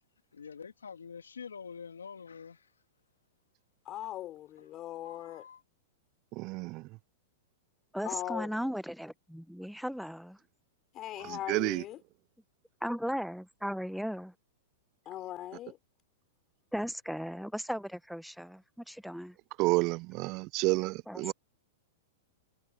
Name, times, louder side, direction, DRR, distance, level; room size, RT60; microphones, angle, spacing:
voice 1, 0.3-2.7 4.6-4.8 5.0-5.6, left 6 dB, 90° left, 2.4 m, -46 dB
voice 2, 3.9-5.4 8.0-8.5 10.9-12.0 15.1-15.8, left 13 dB, 35° left, 4.0 m, -39 dB
voice 3, 6.4-6.8 11.5-11.8 19.6-21.3, right 24 dB, 45° right, 0.3 m, -29 dB
voice 4, 7.9-10.4 12.8-14.3 16.7-19.3 21.1-21.3, equal, ahead, 1.0 m, -36 dB
hypercardioid pair, 110°, 0 cm